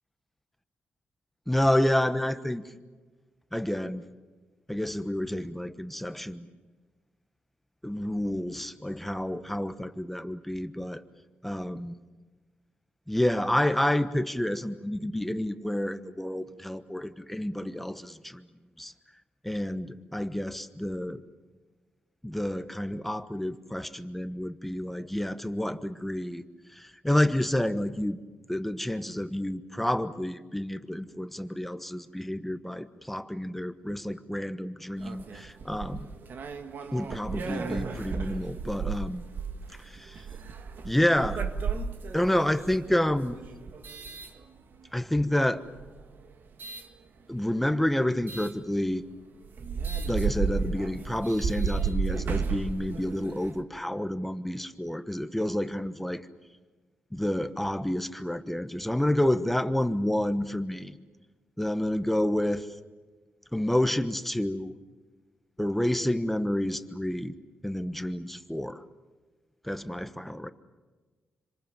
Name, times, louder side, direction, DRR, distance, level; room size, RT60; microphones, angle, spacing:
voice 1, 1.5-2.6 3.5-4.0 4.7-6.5 7.8-11.0 11.4-11.9 13.1-18.4 18.8-18.9 19.4-21.2 22.2-26.4 26.7-28.2 28.5-36.1 36.9-39.2 39.8-40.2 40.8-41.4 42.1-43.4 44.9-45.6 47.3-49.0 50.1-56.2 57.1-61.0 61.6-62.7 63.5-64.8 65.6-67.3 67.6-68.8 69.6-70.5, left 1 dB, 5° left, 11 dB, 1.1 m, -29 dB
sound 1, 35.0-45.0 45.6-46.9 48.3-48.5 49.1-49.2 49.4-53.6, right 5 dB, 60° right, 1.8 m, -34 dB
27.0 x 26.0 x 7.4 m, 1.3 s
cardioid pair, 95°, 4 cm